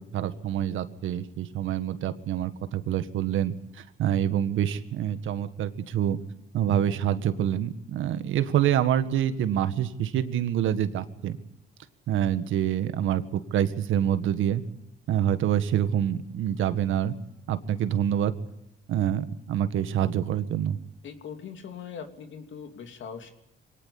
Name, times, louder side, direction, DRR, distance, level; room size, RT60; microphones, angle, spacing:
voice 1, 0.1-6.2 6.5-11.4 12.1-14.6 15.1-17.2 17.5-18.3 18.9-20.8, right 10 dB, 80° right, 11 dB, 1.8 m, -26 dB
voice 2, 21.0-23.3, left 7 dB, 70° left, 6 dB, 3.0 m, -41 dB
23.5 x 19.0 x 8.5 m, 0.80 s
cardioid pair, 90°, 20 cm